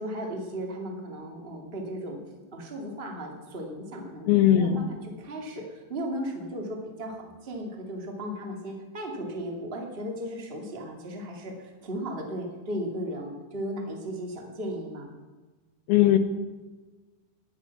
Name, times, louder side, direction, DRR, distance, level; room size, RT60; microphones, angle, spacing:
voice 1, 0.0-2.2 2.5-4.3 4.5-15.1, equal, 30° right, 1 dB, 1.0 m, -36 dB
voice 2, 4.3-4.8 15.9-16.2, left 12 dB, 80° left, 5 dB, 2.2 m, -19 dB
19.0 x 11.5 x 6.1 m, 1.3 s
omnidirectional pair, 5.9 m